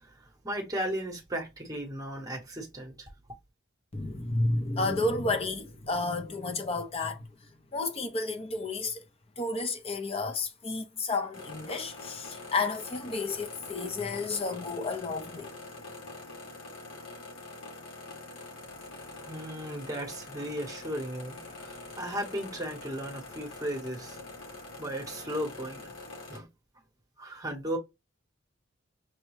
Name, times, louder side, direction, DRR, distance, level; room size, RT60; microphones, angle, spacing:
voice 1, 0.4-3.1 19.3-24.2 24.8-25.9 26.3-26.5 27.2-27.8, equal, 20° right, 1.0 m, -35 dB
voice 2, 3.9-7.2 7.7-9.0 9.4-15.5, left 3 dB, 30° left, 0.7 m, -31 dB
sound 1, 11.3-26.4, left 3 dB, 80° left, 1.2 m, -45 dB
6.1 x 2.2 x 3.1 m
head